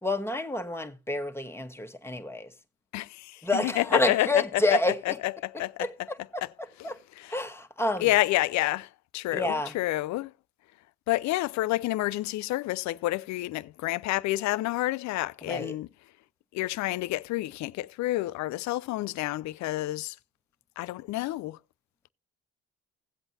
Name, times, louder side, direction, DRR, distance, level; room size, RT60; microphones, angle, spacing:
voice 1, 0.0-2.5 3.4-5.2 5.8-6.4 6.8-7.0 7.3-8.1 9.3-9.7 15.4-15.8, left 1 dB, 10° left, 1.3 m, -29 dB
voice 2, 2.9-4.4 5.1-5.9 8.0-10.3 11.1-15.9 16.5-20.2 20.8-21.6, left 17 dB, 65° left, 0.5 m, -29 dB
16.5 x 8.0 x 2.7 m
hypercardioid pair, 55°, 31 cm